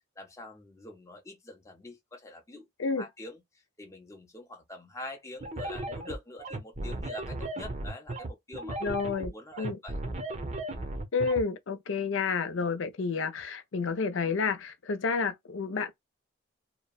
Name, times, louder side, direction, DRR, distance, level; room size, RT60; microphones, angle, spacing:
voice 1, 0.2-2.7 3.0-3.4 3.8-8.8 9.3-10.0, left 2 dB, 15° left, 0.6 m, -45 dB
sound 1, 5.4-11.4, right 1 dB, 35° right, 0.6 m, -36 dB
voice 2, 8.8-9.8 11.1-15.9, left 5 dB, 70° left, 0.5 m, -30 dB
2.9 x 2.1 x 2.3 m
head